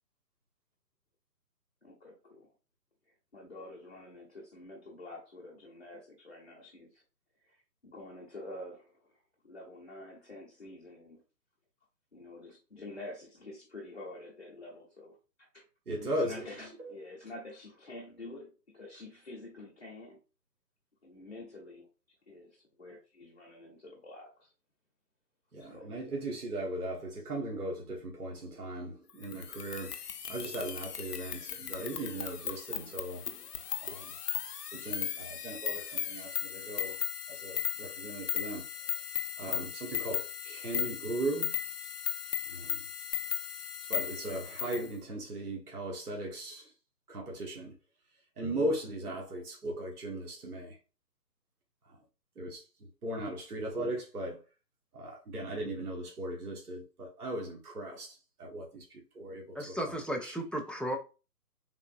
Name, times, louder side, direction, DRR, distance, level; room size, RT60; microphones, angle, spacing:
voice 1, 1.8-2.5 3.3-7.0 7.4-7.6 7.8-9.2 9.4-11.2 12.1-15.7 16.0-20.2 21.0-21.9 22.3-24.5 25.6-25.9, left 2 dB, 40° left, 0.8 m, -48 dB
voice 2, 15.9-16.5 16.8-16.9 25.5-30.0 30.3-33.3 33.8-34.1 34.7-37.0 37.3-38.7 39.0-41.5 42.5-42.8 43.9-46.7 47.1-47.7 48.4-50.8 51.9-52.0 52.4-52.6 53.0-54.4 54.9-60.3, right 1 dB, 60° right, 1.4 m, -38 dB
sound 1, 29.2-44.9, left 9 dB, 70° left, 0.6 m, -37 dB
voice 3, 59.5-61.0, right 1 dB, ahead, 0.4 m, -34 dB
3.7 x 3.4 x 2.5 m
hypercardioid pair, 180°, 50 cm